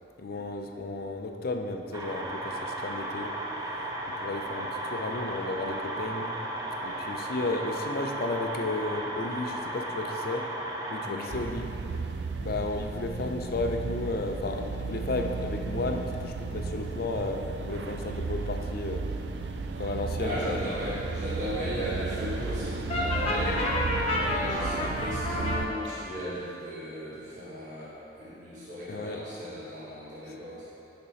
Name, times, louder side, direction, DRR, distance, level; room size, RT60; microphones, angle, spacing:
voice 1, 0.2-3.3 4.2-6.4 6.8-12.1 12.4-19.1 19.8-20.6 28.9-29.2, left 2 dB, 55° left, 4 dB, 0.5 m, -33 dB
sound 1, 1.9-11.3, right 1 dB, 20° right, 0.7 m, -35 dB
sound 2, 11.3-25.7, right 4 dB, 65° right, 0.4 m, -34 dB
voice 2, 20.2-30.7, equal, 45° right, -9 dB, 1.3 m, -36 dB
Brass instrument, 22.9-25.6, left 2 dB, 35° left, 0.9 m, -29 dB
10.5 x 4.3 x 4.1 m, 2.9 s
head